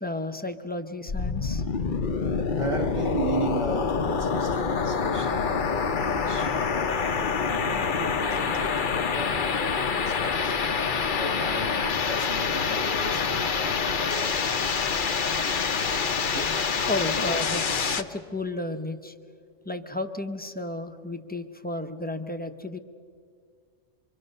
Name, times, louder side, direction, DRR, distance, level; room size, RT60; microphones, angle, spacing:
voice 1, 0.0-1.6 16.3-16.5 16.9-19.1 19.6-22.8, left 2 dB, 10° left, 0.8 m, -33 dB
sound 1, 1.1-18.0, left 5 dB, 45° left, 0.9 m, -26 dB
voice 2, 2.2-9.6 10.0-14.9 15.6-16.6 17.1-17.2, right 2 dB, 25° right, 1.2 m, -36 dB
25.0 x 25.0 x 6.6 m
omnidirectional pair, 1.3 m